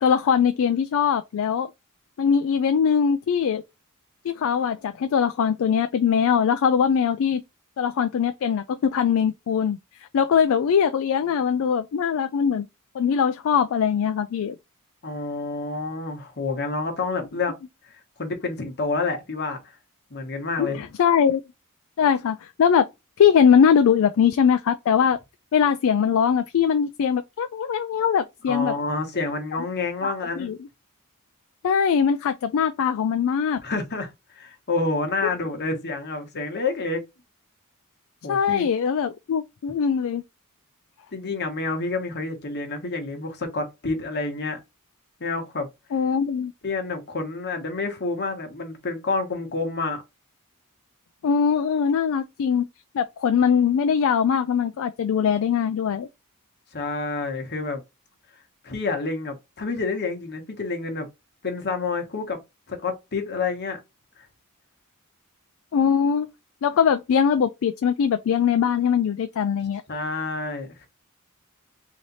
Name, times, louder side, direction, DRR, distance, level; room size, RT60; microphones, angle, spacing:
voice 1, 0.0-1.7 2.2-3.6 4.2-7.4 7.8-9.8 10.1-12.7 12.9-14.6 20.6-21.4 22.0-22.9 23.2-25.2 25.5-28.7 30.0-30.6 31.6-33.6 35.2-35.3 38.3-40.2 45.9-46.5 51.2-52.7 52.9-56.1 65.7-66.3 66.6-69.8, left 7 dB, 65° left, 0.3 m, -21 dB
voice 2, 15.0-17.5 18.2-19.8 20.1-20.8 28.5-30.5 33.6-37.0 38.2-38.7 41.1-44.6 45.2-45.7 46.6-50.0 56.7-57.8 58.6-61.1 61.4-62.4 62.7-63.8 69.9-70.9, left 3 dB, 50° left, 1.2 m, -28 dB
3.2 x 2.8 x 4.0 m
head